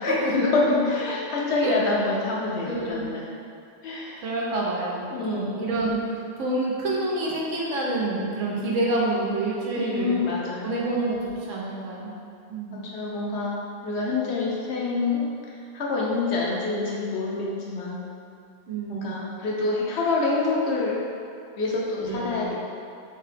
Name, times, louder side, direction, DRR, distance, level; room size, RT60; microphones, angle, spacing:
voice 1, 0.0-3.3 3.8-4.2 5.1-5.6 9.7-10.7 12.7-13.6 13.8-15.3 15.7-18.0 18.9-21.0 21.6-22.7, left 3 dB, 65° left, -4 dB, 0.8 m, -26 dB
voice 2, 2.7-3.1 4.2-6.0 6.4-10.2 10.6-12.1 12.5-12.8 18.7-19.2 22.0-22.5, right 2 dB, 90° right, -4 dB, 1.0 m, -28 dB
3.3 x 2.8 x 3.3 m, 2.5 s
omnidirectional pair, 1.3 m